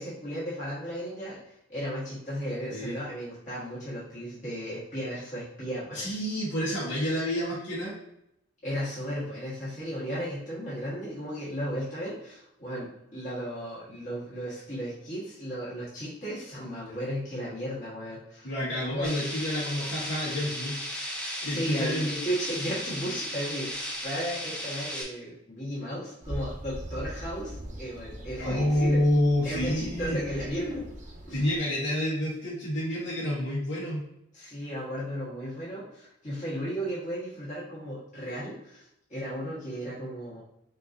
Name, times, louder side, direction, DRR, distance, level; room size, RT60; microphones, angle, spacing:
voice 1, 0.0-6.1 8.6-18.5 18.9-19.1 21.4-29.0 29.4-30.8 31.3-31.4 34.3-40.4, equal, 40° left, -9 dB, 1.4 m, -35 dB
voice 2, 5.9-7.9 16.9-17.0 18.4-20.7 21.4-22.1 28.4-30.2 31.3-34.0, left 1 dB, 75° left, -9 dB, 1.2 m, -28 dB
sound 1, 19.0-25.0, equal, 5° left, 0.6 m, -36 dB
sound 2, 26.2-31.6, equal, 35° right, 0.8 m, -41 dB
5.7 x 2.6 x 2.6 m, 0.80 s
head